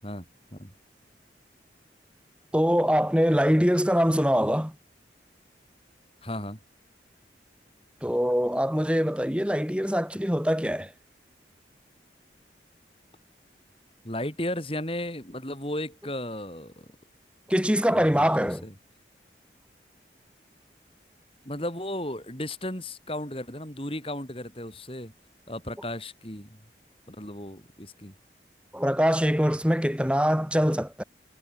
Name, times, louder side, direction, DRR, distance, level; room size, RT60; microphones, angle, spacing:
voice 1, 2.5-4.7 8.0-10.9 17.5-18.6 28.7-31.0, equal, 5° right, 7.5 m, -23 dB
voice 2, 6.2-6.6 14.0-16.9 17.9-18.7 21.4-25.1 25.5-26.6 27.1-28.1, left 1 dB, 30° left, 7.9 m, -35 dB
head